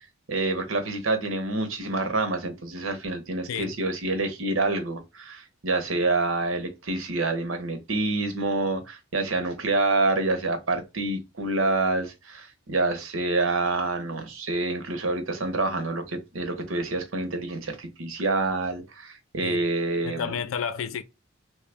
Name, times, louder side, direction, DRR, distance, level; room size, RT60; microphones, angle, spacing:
voice 1, 0.3-20.3, right 2 dB, 80° right, 0.9 m, -27 dB
voice 2, 20.0-21.0, left 6 dB, 85° left, 0.4 m, -31 dB
3.2 x 2.2 x 3.3 m
head